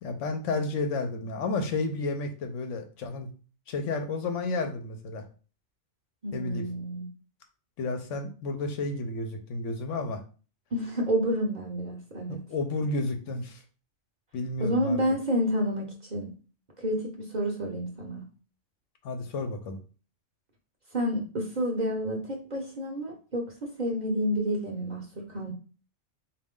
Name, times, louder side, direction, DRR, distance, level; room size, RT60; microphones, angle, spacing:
voice 1, 0.0-3.3 3.7-5.2 6.3-6.6 7.8-10.2 12.3-13.6 14.3-15.0 19.0-19.8, left 3 dB, 75° left, 6 dB, 1.0 m, -31 dB
voice 2, 6.2-7.1 10.7-12.4 14.6-16.3 16.8-18.2 20.9-25.5, equal, 40° right, 0 dB, 0.8 m, -29 dB
4.1 x 2.5 x 3.6 m, 0.37 s
omnidirectional pair, 1.3 m